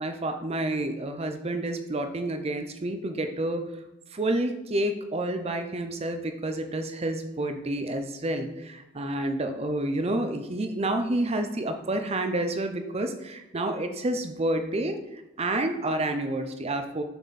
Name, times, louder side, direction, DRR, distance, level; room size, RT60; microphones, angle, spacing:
voice 1, 0.0-3.6 4.1-15.0 15.4-17.0, right 1 dB, 30° right, 6 dB, 0.6 m, -29 dB
6.7 x 6.6 x 4.1 m, 0.97 s
head